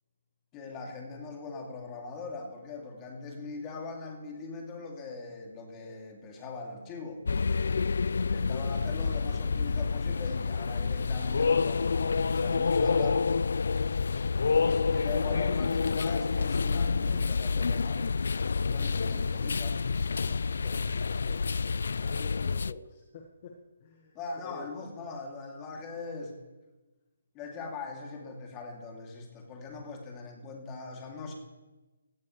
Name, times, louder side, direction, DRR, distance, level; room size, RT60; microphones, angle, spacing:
voice 1, 0.5-7.2 8.1-13.2 14.1-14.3 14.6-18.1 18.7-20.4 24.1-26.3 27.3-31.3, left 3 dB, 20° left, 1 dB, 2.7 m, -41 dB
sound 1, 7.2-22.7, left 4 dB, 70° left, 0.3 m, -28 dB
voice 2, 18.9-19.2 20.4-21.5 21.7-23.5 23.8-24.2 24.4-24.7, left 4 dB, 35° left, 2 dB, 1.5 m, -47 dB
17.0 x 15.0 x 3.3 m, 1.1 s
hypercardioid pair, 155°, 0 cm